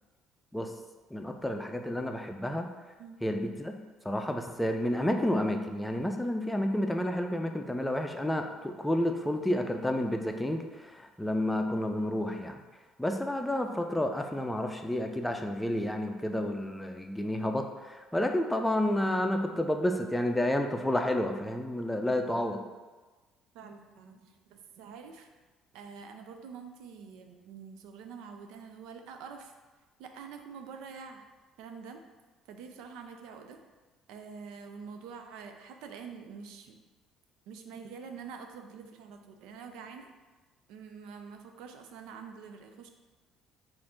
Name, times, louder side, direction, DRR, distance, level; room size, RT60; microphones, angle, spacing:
voice 1, 1.1-2.7 3.2-3.8 4.0-12.6 13.0-22.6, left 1 dB, 10° left, 4 dB, 0.5 m, -30 dB
voice 2, 23.5-25.3 25.7-29.5 30.0-31.2 31.6-32.0 32.5-33.6 34.1-36.8 37.5-40.1 40.7-42.9, right 6 dB, 75° right, 5 dB, 0.4 m, -46 dB
4.2 x 2.6 x 4.2 m, 1.3 s
hypercardioid pair, 60°, 0 cm